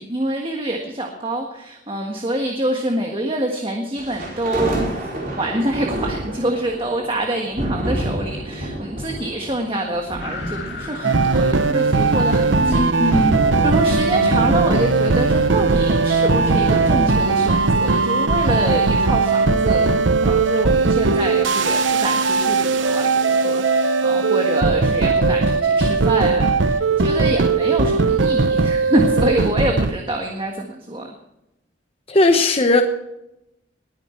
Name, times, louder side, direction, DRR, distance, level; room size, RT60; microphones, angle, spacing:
voice 1, 0.0-4.9 5.4-31.1, right 1 dB, 30° right, 2 dB, 1.6 m, -26 dB
sound 1, 4.0-18.3, right 1 dB, 45° right, 4.7 m, -30 dB
sound 2, 10.2-12.2 13.9-16.2, left 2 dB, 60° left, 2.6 m, -33 dB
sound 3, 11.0-29.9, right 4 dB, 75° right, 0.8 m, -18 dB
voice 2, 12.6-13.4 32.1-32.8, left 2 dB, 30° left, 4 dB, 1.0 m, -18 dB
20.0 x 9.6 x 4.5 m, 0.87 s
head